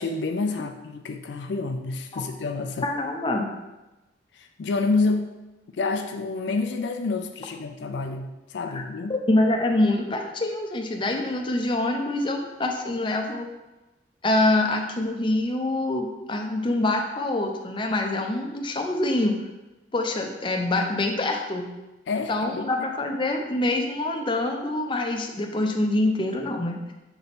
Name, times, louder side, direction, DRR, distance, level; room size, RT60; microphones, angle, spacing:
voice 1, 0.0-2.9 4.3-5.3 5.7-9.1 11.1-11.2 22.1-22.9, left 3 dB, 70° left, 6 dB, 0.4 m, -28 dB
voice 2, 2.8-3.5 8.7-8.8 9.1-13.5 14.2-19.4 19.9-21.7 22.3-26.8, left 2 dB, 25° left, 2 dB, 0.6 m, -25 dB
6.9 x 3.4 x 4.1 m, 1.1 s
head